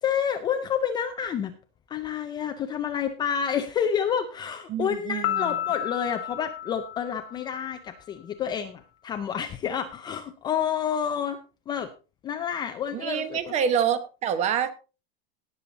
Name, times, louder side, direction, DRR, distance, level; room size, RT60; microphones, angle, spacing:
voice 1, 0.0-1.5 1.9-11.4 11.7-11.9 12.2-13.5, left 8 dB, 15° left, 6 dB, 0.5 m, -29 dB
voice 2, 4.7-5.6 12.9-14.7, right 8 dB, 20° right, 13 dB, 1.0 m, -27 dB
Piano, 5.2-7.8, left 12 dB, 85° left, 1.3 m, -32 dB
17.5 x 7.0 x 4.0 m, 0.32 s
supercardioid pair, 170°, 30 cm